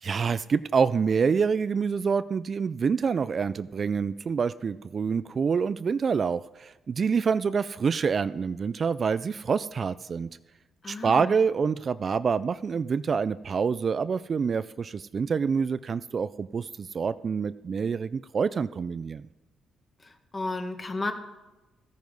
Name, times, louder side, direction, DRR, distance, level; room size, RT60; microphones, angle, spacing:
voice 1, 0.0-10.3 10.9-19.3, right 5 dB, 45° right, 15 dB, 0.4 m, -27 dB
voice 2, 10.8-11.4 20.0-21.1, left 2 dB, 25° left, 6 dB, 1.7 m, -33 dB
14.0 x 9.3 x 5.3 m, 1.1 s
cardioid pair, 90°, 0 cm